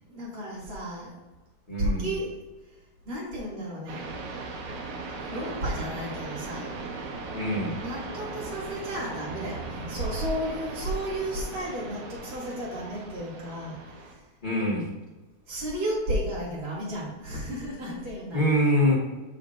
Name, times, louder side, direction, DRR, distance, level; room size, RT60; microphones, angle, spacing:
voice 1, 0.1-1.3 1.8-2.3 3.0-4.1 5.3-6.8 7.8-14.3 15.5-18.5, equal, 40° right, -6 dB, 3.0 m, -33 dB
voice 2, 1.7-2.1 7.3-7.8 14.4-14.9 18.3-18.9, equal, 30° left, -6 dB, 0.9 m, -24 dB
sound 1, 3.9-14.1, right 3 dB, 75° right, 2.4 m, -38 dB
9.6 x 6.7 x 2.6 m, 1.2 s
omnidirectional pair, 3.5 m